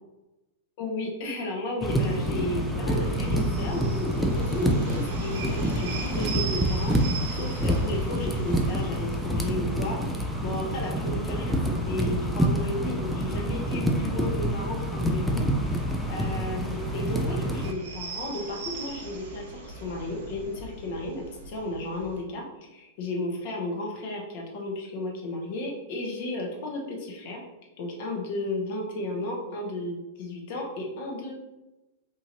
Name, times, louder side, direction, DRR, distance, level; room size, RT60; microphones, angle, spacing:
voice 1, 0.8-7.0 7.3-22.4 22.7-27.4 27.8-31.3, left 2 dB, 55° left, 0 dB, 0.8 m, -33 dB
sound 1, 1.8-17.7, equal, ahead, 0.4 m, -27 dB
sound 2, 2.9-22.2, right 3 dB, 60° right, 0.8 m, -40 dB
2.8 x 2.5 x 2.9 m, 1.0 s
hypercardioid pair, 110°, 0 cm